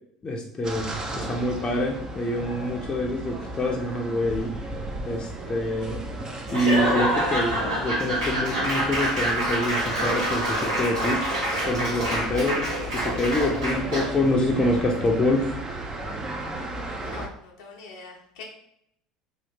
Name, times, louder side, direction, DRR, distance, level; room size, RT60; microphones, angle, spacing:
voice 1, 0.2-4.5 5.0-6.0 6.5-11.2 11.7-15.5, left 1 dB, 25° left, -1 dB, 0.6 m, -26 dB
sound 1, 0.6-17.3, right 1 dB, 25° right, 0.6 m, -35 dB
Laughter / Applause / Crowd, 6.5-14.2, right 1 dB, 80° right, 1.4 m, -26 dB
voice 2, 17.0-18.4, left 4 dB, 75° left, -1 dB, 0.6 m, -43 dB
2.9 x 2.5 x 3.4 m, 0.73 s
hypercardioid pair, 70°, 3 cm